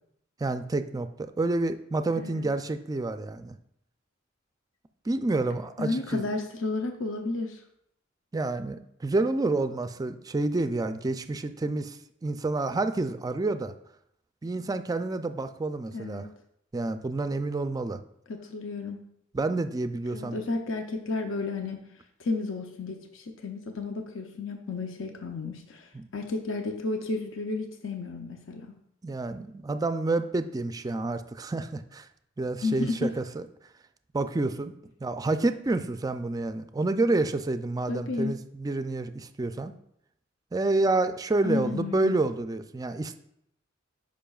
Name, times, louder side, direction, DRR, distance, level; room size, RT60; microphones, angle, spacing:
voice 1, 0.4-3.6 5.1-6.3 8.3-13.7 14.4-16.3 16.7-18.0 19.3-20.5 25.9-26.1 29.0-32.1 32.4-33.5 34.1-34.7 35.0-39.7 40.5-43.2, right 2 dB, 20° right, 10 dB, 0.3 m, -29 dB
voice 2, 5.8-7.6 15.9-16.3 18.3-19.0 20.1-21.8 22.2-28.7 32.6-33.1 37.9-38.3 41.4-42.2, left 3 dB, 75° left, 4 dB, 0.6 m, -32 dB
10.0 x 5.3 x 2.4 m, 0.75 s
head